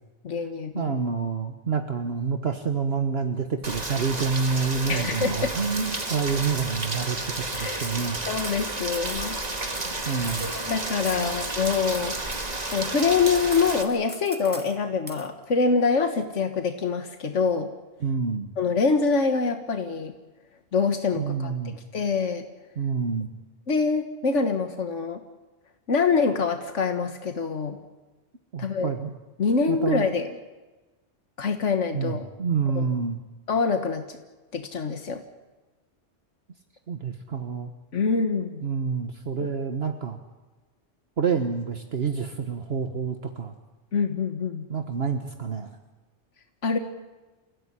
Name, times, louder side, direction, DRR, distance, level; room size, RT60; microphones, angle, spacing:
voice 1, 0.2-1.0 4.9-5.5 7.6-7.9 8.3-9.4 10.0-12.4 12.7-17.7 18.6-20.1 20.7-22.4 23.7-25.2 25.9-27.8 28.6-28.9 29.4-30.3 31.4-32.3 32.8-32.9 33.5-34.2 34.5-35.2 37.9-38.7 39.4-39.5 43.9-44.7 46.6-46.8, left 5 dB, 90° left, 6 dB, 1.8 m, -25 dB
voice 2, 0.7-8.2 10.0-10.5 11.2-11.4 18.0-18.5 21.2-21.7 22.8-23.3 28.5-29.1 29.7-30.1 31.9-33.2 36.9-37.7 38.6-40.2 41.2-43.5 44.7-45.7, right 5 dB, 60° right, 6 dB, 1.5 m, -28 dB
Rain, 3.6-13.8, right 2 dB, 35° right, 2.1 m, -32 dB
sound 1, 5.9-6.1 6.4-8.6 8.9-10.8 11.1-11.4 11.6-13.2 13.5-14.8 15.1-15.3, equal, 10° right, 1.9 m, -41 dB
29.0 x 16.5 x 9.9 m, 1.2 s
omnidirectional pair, 1.2 m